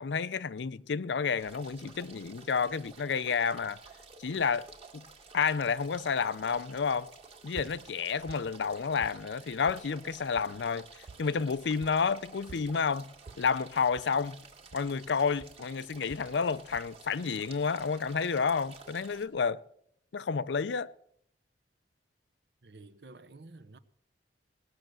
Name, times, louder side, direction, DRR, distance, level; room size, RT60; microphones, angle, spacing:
voice 1, 0.0-3.8 4.2-4.7 4.9-5.0 5.3-7.1 7.4-10.9 11.2-13.1 13.4-14.4 14.7-19.6 20.1-20.9, left 5 dB, 80° left, 0.5 m, -30 dB
sound 1, 1.4-19.2, right 4 dB, 35° right, 1.8 m, -52 dB
sound 2, 7.1-8.0 8.3-9.3 9.7-10.1 10.4-10.6 10.9-12.1 12.5-15.1 15.4-16.4 16.7-17.0, right 4 dB, 50° right, 0.5 m, -51 dB
voice 2, 22.6-23.8, right 2 dB, 65° right, 0.8 m, -51 dB
19.0 x 6.6 x 7.5 m
head